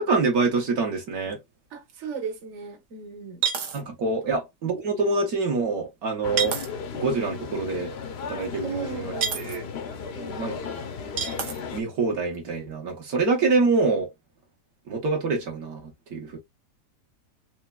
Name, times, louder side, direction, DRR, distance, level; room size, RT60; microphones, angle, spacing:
voice 1, 0.0-1.4 3.7-6.6 6.9-7.9 8.3-9.6 10.4-10.6 11.7-14.1 14.9-16.4, right 3 dB, 65° right, 1.4 m, -25 dB
sound 1, 1.3-1.4 1.9-2.0 3.4-3.8 6.4-6.7 9.2-9.6 11.2-11.6, right 7 dB, 85° right, 1.4 m, -27 dB
voice 2, 1.7-3.4 4.2-4.3 8.6-9.5 10.1-10.6, right 5 dB, 50° right, 1.2 m, -37 dB
sound 2, 6.2-11.8, left 6 dB, 80° left, 0.5 m, -35 dB
4.2 x 2.5 x 2.3 m
omnidirectional pair, 1.7 m